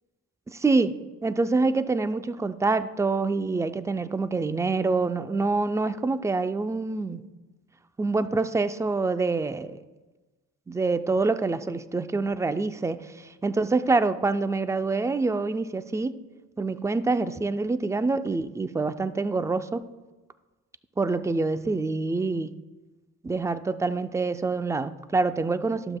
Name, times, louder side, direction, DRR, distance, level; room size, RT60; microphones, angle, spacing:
voice 1, 0.5-1.0 1.2-7.2 8.0-9.8 10.7-16.2 16.6-19.8 21.0-22.5 23.2-26.0, right 3 dB, 10° right, 11 dB, 0.4 m, -26 dB
12.0 x 7.8 x 2.3 m, 1.2 s
cardioid pair, 90°, 30 cm